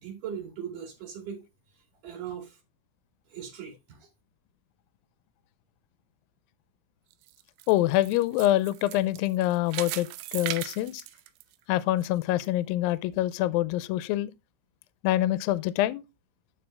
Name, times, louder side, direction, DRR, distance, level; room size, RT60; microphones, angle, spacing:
voice 1, 0.0-1.5 2.0-2.6 3.3-4.1, right 8 dB, 65° right, 3.9 m, -39 dB
sound 1, 7.1-12.1 12.5-12.6 13.1-13.2, right 15 dB, 85° right, 2.5 m, -38 dB
voice 2, 7.7-11.0 11.7-14.3 15.0-16.0, left 15 dB, 80° left, 2.3 m, -25 dB
12.0 x 4.3 x 3.3 m
omnidirectional pair, 4.3 m